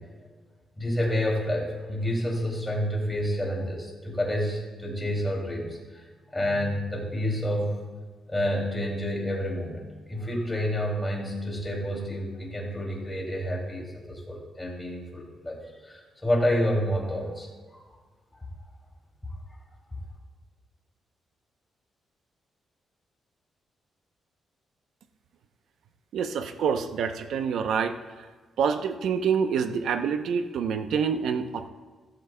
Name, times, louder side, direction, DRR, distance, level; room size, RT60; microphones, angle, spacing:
voice 1, 0.8-6.0 6.3-7.7 8.3-17.5 17.7-17.8 19.2-19.3, equal, 10° left, -1 dB, 2.5 m, -29 dB
voice 2, 26.1-28.3 28.6-31.7, right 6 dB, 75° right, 8 dB, 0.6 m, -27 dB
15.5 x 14.0 x 2.2 m, 1.4 s
wide cardioid pair, 160°, 0 cm